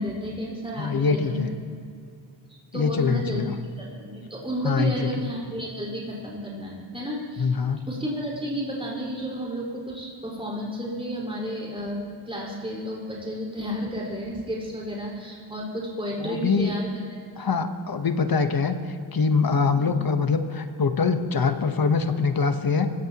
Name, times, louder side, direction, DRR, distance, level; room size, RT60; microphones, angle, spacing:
voice 1, 0.0-1.4 2.7-3.5 3.8-7.5 7.9-16.9 19.7-19.9, equal, 10° right, -5 dB, 4.9 m, -32 dB
voice 2, 0.8-1.5 2.7-3.6 4.6-5.0 7.4-7.9 16.2-16.8 17.4-18.7 19.1-22.9, left 5 dB, 50° left, 7 dB, 1.3 m, -23 dB
25.0 x 16.5 x 3.0 m, 2.3 s
cardioid pair, 80°, 45 cm